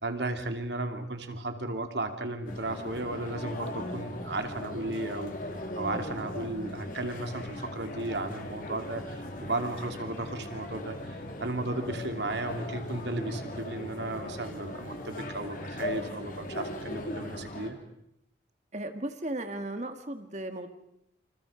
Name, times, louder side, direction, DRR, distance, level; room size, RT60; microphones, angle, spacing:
voice 1, 0.0-5.3 5.8-17.8, right 2 dB, 65° right, 6 dB, 2.9 m, -35 dB
sound 1, 2.4-17.7, left 1 dB, 45° left, 3.4 m, -39 dB
voice 2, 18.7-20.7, right 1 dB, 40° right, 7 dB, 1.8 m, -36 dB
29.0 x 27.5 x 5.1 m, 0.78 s
head